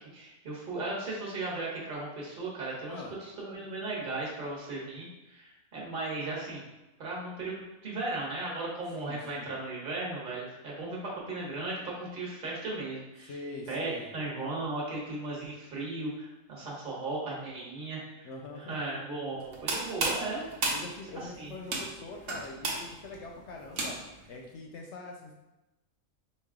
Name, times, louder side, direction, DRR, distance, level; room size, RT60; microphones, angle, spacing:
voice 1, 0.1-6.6 7.0-13.4 13.7-18.3 18.6-20.4 21.2-21.5, right 2 dB, 35° right, -4 dB, 1.2 m, -36 dB
voice 2, 9.0-9.5 13.3-14.1 18.2-18.8 20.7-24.0 24.3-25.3, left 3 dB, 65° left, 1 dB, 0.7 m, -43 dB
sound 1, 19.4-24.3, right 2 dB, 75° right, 1.3 m, -34 dB
5.1 x 2.3 x 3.5 m, 1.0 s
omnidirectional pair, 1.5 m